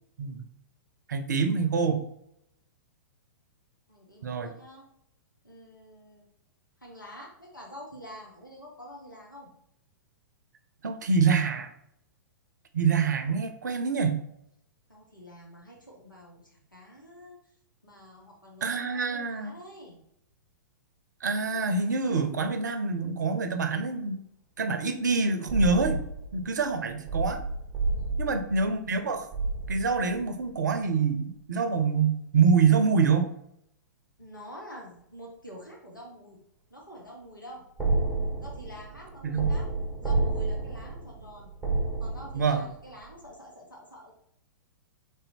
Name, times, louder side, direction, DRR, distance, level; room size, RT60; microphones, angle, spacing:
voice 1, 1.1-2.0 4.2-4.5 10.8-11.7 12.7-14.2 18.6-19.5 21.2-24.2 24.6-26.0 26.3-27.4 28.2-29.3 29.7-33.3 39.2-39.5 42.3-42.6, right 5 dB, 65° right, 8 dB, 0.6 m, -26 dB
voice 2, 3.9-4.8 5.4-6.2 6.8-9.5 14.9-17.4 17.8-20.0 27.8-28.2 34.2-36.4 36.7-37.6 38.4-39.7 40.0-41.5 42.0-44.2, equal, 90° left, -3 dB, 1.1 m, -47 dB
sound 1, 25.5-30.5 37.8-42.7 43.0-43.1, right 3 dB, ahead, 1.0 m, -30 dB
3.4 x 2.7 x 4.2 m, 0.75 s
figure-of-eight pair, 110°, 10 cm